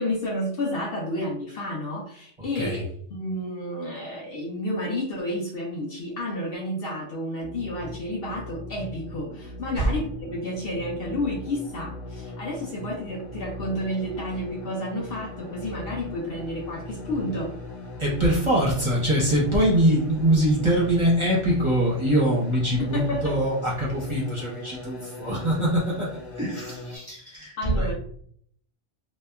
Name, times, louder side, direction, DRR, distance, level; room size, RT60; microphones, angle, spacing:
voice 1, 0.0-2.8 3.1-17.5 22.8-23.4 27.6-27.9, left 1 dB, 60° left, -2 dB, 0.7 m, -31 dB
sound 1, 7.4-27.0, left 2 dB, 80° left, 1.2 m, -39 dB
voice 2, 18.0-26.1 26.4-27.9, right 1 dB, 30° right, -6 dB, 0.7 m, -23 dB
2.8 x 2.2 x 2.3 m, 0.63 s
omnidirectional pair, 1.3 m